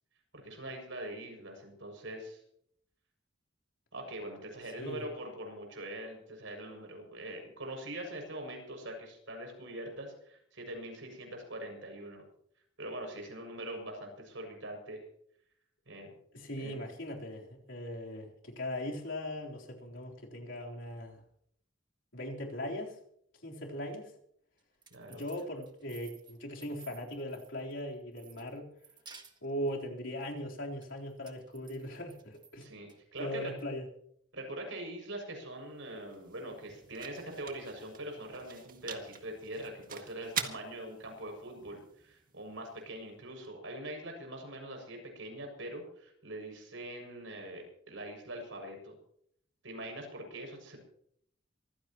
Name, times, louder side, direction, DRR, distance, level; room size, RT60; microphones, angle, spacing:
voice 1, 0.3-2.4 3.9-12.2 12.8-15.0 15.9-16.1 16.6-16.8 24.9-25.2 32.6-33.5 34.3-48.9 49.6-50.8, right 1 dB, 75° right, 3 dB, 6.8 m, -43 dB
voice 2, 16.3-21.2 22.1-23.0 23.4-24.1 25.1-28.7 29.4-32.7 33.2-33.9, equal, 70° left, -1 dB, 3.8 m, -39 dB
sound 1, 24.6-27.8 28.2-29.7 30.8-32.5 32.9-33.6, right 5 dB, 25° right, 1.7 m, -56 dB
sound 2, 35.4-43.5, right 7 dB, 45° right, 1.8 m, -45 dB
25.0 x 16.0 x 3.0 m, 0.69 s
head